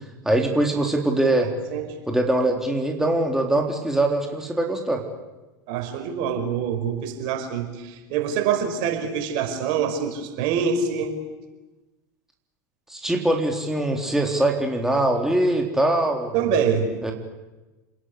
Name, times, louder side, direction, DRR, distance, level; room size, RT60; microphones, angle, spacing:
voice 1, 0.2-1.5 2.1-5.0 12.9-16.3 17.0-17.1, right 1 dB, 5° right, 1 dB, 3.9 m, -22 dB
voice 2, 5.7-11.1 16.3-16.9, right 7 dB, 55° right, 6 dB, 5.3 m, -25 dB
28.5 x 20.5 x 8.5 m, 1.1 s
hypercardioid pair, 85°, 10 cm